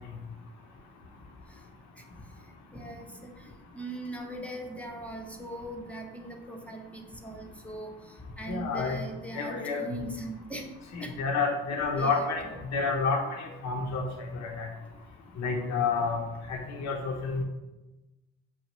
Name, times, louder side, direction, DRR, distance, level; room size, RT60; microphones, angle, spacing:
voice 1, 2.7-10.7 11.0-11.1 12.0-12.5, right 1 dB, 5° left, 1 dB, 0.6 m, -40 dB
voice 2, 8.5-9.0 9.3-9.8 10.9-14.1 14.3-14.7 15.4-16.2 16.5-17.4, left 4 dB, 60° left, 2 dB, 0.7 m, -29 dB
5.5 x 2.4 x 3.0 m, 1.1 s
cardioid pair, 90°, 30 cm